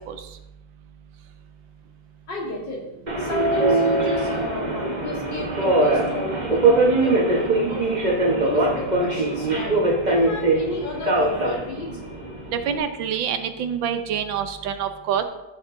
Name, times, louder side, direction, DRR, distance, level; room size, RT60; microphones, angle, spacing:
voice 1, 2.3-2.8 3.2-7.8 8.3-9.7 10.1-11.9, left 2 dB, 70° left, -4 dB, 3.0 m, -32 dB
Subway metro underground, 3.1-12.8, right 2 dB, 25° right, 1.1 m, -22 dB
voice 2, 12.7-15.2, right 8 dB, 80° right, 8 dB, 1.5 m, -26 dB
14.0 x 6.1 x 2.7 m, 0.95 s
omnidirectional pair, 2.1 m